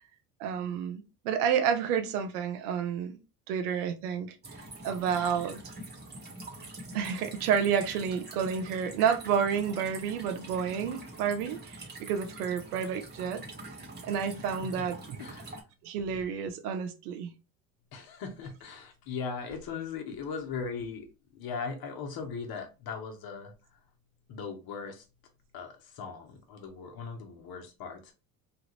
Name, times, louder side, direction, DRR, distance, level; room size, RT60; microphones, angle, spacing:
voice 1, 0.4-3.1 3.5-4.3 4.8-5.6 6.9-13.4 14.0-15.0 15.8-17.3, right 7 dB, 80° right, 0.7 m, -30 dB
sound 1, 4.4-15.6, right 2 dB, 20° right, 1.2 m, -45 dB
voice 2, 17.9-21.1 21.3-23.5 24.3-25.0 25.5-28.1, left 5 dB, 55° left, 1.0 m, -39 dB
3.1 x 2.4 x 3.0 m
hypercardioid pair, 70°, 44 cm